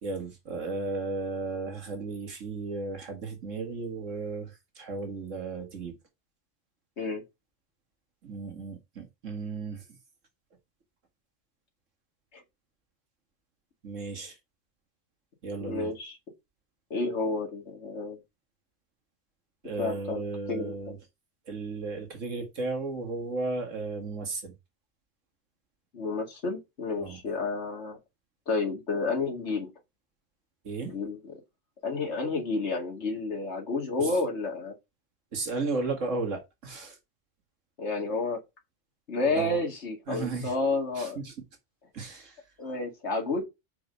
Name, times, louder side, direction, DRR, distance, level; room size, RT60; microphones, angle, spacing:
voice 1, 0.0-6.0 8.2-9.8 13.8-14.4 15.4-15.9 19.6-21.0 21.5-24.5 27.0-27.2 30.6-31.0 34.0-34.1 35.3-37.0 39.3-39.6 40.1-40.5 41.0-41.3 41.9-42.4, right 3 dB, 85° right, 2.3 m, -34 dB
voice 2, 15.6-16.2 16.9-18.2 19.8-20.2 20.5-20.7 25.9-28.0 28.5-29.7 30.9-31.3 31.8-34.7 37.8-38.4 39.1-41.2 42.6-43.4, left 3 dB, 65° left, 2.5 m, -30 dB
6.0 x 5.0 x 5.4 m
omnidirectional pair, 1.3 m